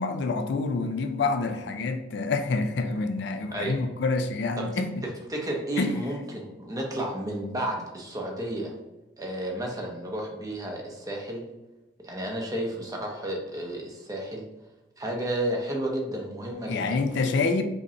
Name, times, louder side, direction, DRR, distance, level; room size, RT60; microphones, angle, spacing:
voice 1, 0.0-5.0 5.8-5.9 16.7-17.6, left 3 dB, 65° left, 7 dB, 0.3 m, -27 dB
voice 2, 5.3-8.7 9.2-11.5 12.0-14.4 15.0-17.0, right 1 dB, 20° right, 0 dB, 0.6 m, -32 dB
5.0 x 2.1 x 2.7 m, 1.1 s
head